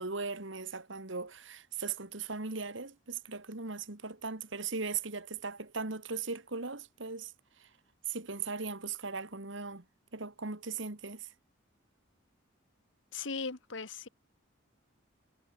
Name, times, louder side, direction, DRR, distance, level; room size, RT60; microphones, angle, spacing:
voice 1, 0.0-7.3 8.1-9.8 10.1-11.3, right 4 dB, 70° right, 2.1 m, -38 dB
voice 2, 13.1-14.1, left 4 dB, 70° left, 1.6 m, -38 dB
head